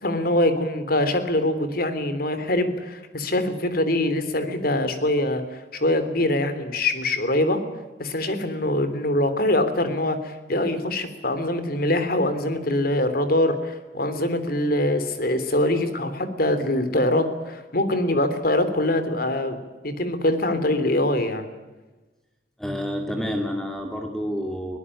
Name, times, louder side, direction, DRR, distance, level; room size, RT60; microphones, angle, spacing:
voice 1, 0.0-5.4 5.7-7.6 8.0-19.6 19.8-21.5, left 1 dB, 55° left, 10 dB, 3.3 m, -23 dB
voice 2, 22.6-24.8, equal, 5° left, 3 dB, 2.3 m, -29 dB
22.5 x 18.5 x 10.0 m, 1.2 s
head